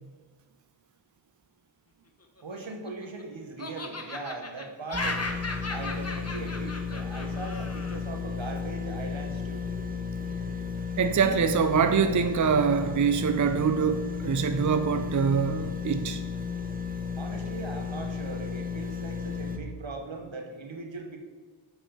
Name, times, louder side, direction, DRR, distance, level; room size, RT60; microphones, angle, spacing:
Laughter, 2.4-3.2 3.6-8.0, left 3 dB, 30° left, 1.0 m, -36 dB
voice 1, 2.4-5.2 5.7-9.7 17.2-21.2, right 3 dB, 75° right, 3 dB, 1.3 m, -39 dB
sound 1, 4.9-19.6, left 5 dB, 20° right, 1.0 m, -34 dB
voice 2, 11.0-16.2, right 6 dB, 40° right, 8 dB, 0.5 m, -24 dB
7.8 x 4.7 x 5.7 m, 1.5 s
wide cardioid pair, 40°, 47 cm